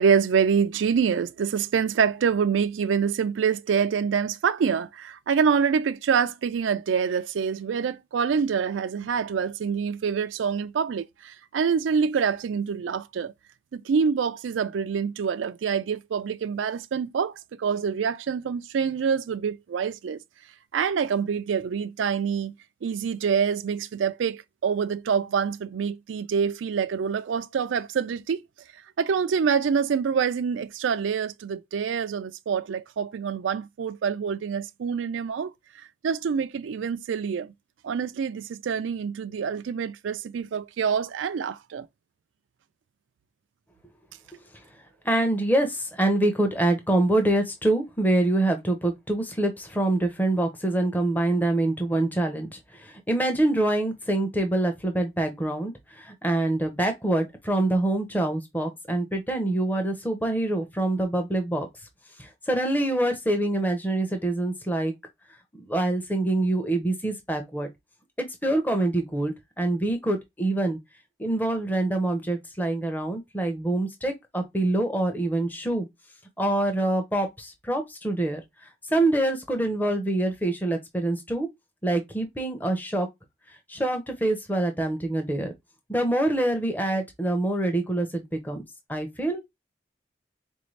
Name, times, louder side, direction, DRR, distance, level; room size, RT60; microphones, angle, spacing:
voice 1, 0.0-13.3 13.7-20.2 20.7-22.5 22.8-28.4 29.0-35.5 36.0-37.5 37.8-41.9, right 6 dB, 90° right, 0.4 m, -26 dB
voice 2, 45.0-61.7 62.2-64.9 65.7-67.7 68.2-70.8 71.2-75.9 76.4-81.5 81.8-83.1 83.7-85.5 85.9-88.6 88.9-89.4, right 1 dB, 10° left, 0.6 m, -25 dB
4.1 x 2.6 x 3.1 m
head